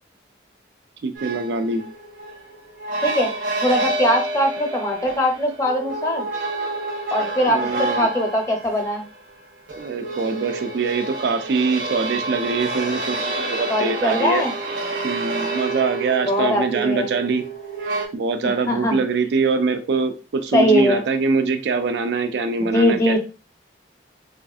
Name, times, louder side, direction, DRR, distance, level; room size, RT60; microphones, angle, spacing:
voice 1, 1.0-1.8 7.5-8.1 9.8-14.4 15.0-17.4 18.1-23.2, right 4 dB, 70° right, 7 dB, 0.4 m, -23 dB
sound 1, 1.2-18.1, right 2 dB, 85° right, 0.9 m, -29 dB
voice 2, 3.6-6.2 7.1-9.0 13.7-14.5 16.3-17.1 18.4-19.0 20.5-21.0 22.7-23.2, equal, 15° left, 2 dB, 0.5 m, -21 dB
3.4 x 2.4 x 2.3 m, 0.33 s
head